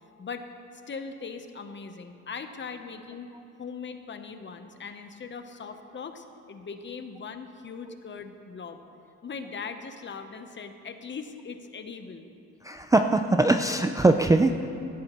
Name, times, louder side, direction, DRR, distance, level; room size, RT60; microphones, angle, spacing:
voice 1, 0.9-3.3 3.6-8.8 9.2-12.3, left 5 dB, 40° left, 8 dB, 0.9 m, -40 dB
voice 2, 12.6-14.7, right 2 dB, 10° right, 5 dB, 0.4 m, -21 dB
16.5 x 12.0 x 3.1 m, 2.8 s
cardioid pair, 90°, 30 cm